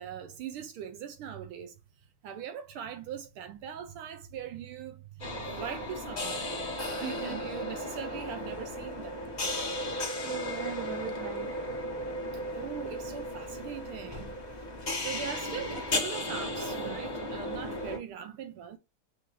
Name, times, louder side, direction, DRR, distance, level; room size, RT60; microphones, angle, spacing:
voice 1, 0.0-1.8 2.2-9.2 12.5-14.3 15.0-18.8, right 8 dB, 80° right, 1.5 m, -41 dB
sound 1, 5.2-18.0, left 1 dB, 40° left, 0.6 m, -35 dB
voice 2, 7.0-7.4 10.2-11.8, right 7 dB, 65° right, 1.4 m, -40 dB
5.6 x 2.6 x 3.0 m
omnidirectional pair, 2.4 m